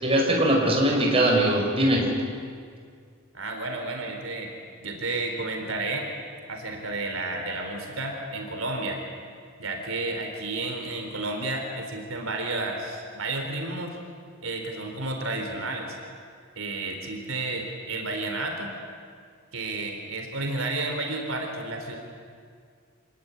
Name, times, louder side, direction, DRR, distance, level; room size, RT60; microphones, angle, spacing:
voice 1, 0.0-2.1, right 1 dB, 30° right, 0 dB, 5.3 m, -21 dB
voice 2, 3.3-4.5 4.8-6.1 6.5-9.0 9.6-14.0 14.4-16.0 16.6-18.7 19.5-22.0, right 2 dB, 80° right, 3 dB, 3.9 m, -31 dB
27.0 x 18.0 x 10.0 m, 2.1 s
head